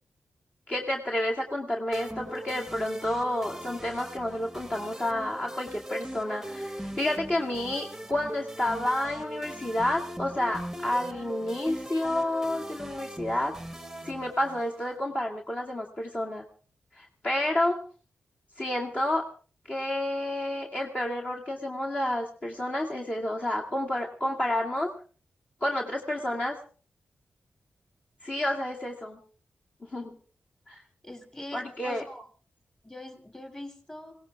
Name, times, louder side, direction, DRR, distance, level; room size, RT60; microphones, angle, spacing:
voice 1, 0.7-13.5 14.0-16.5 17.0-17.8 18.6-19.3 19.7-24.9 25.6-26.6 28.2-29.2 29.8-30.1 30.7-30.8 31.5-32.0, left 1 dB, 35° left, -2 dB, 2.1 m, -30 dB
sound 1, 1.9-15.0, right 1 dB, 5° right, 1.1 m, -40 dB
voice 2, 31.0-32.2 32.8-34.2, left 1 dB, 15° left, 7 dB, 2.7 m, -42 dB
21.0 x 17.5 x 3.5 m, 0.39 s
cardioid pair, 80°, 4 cm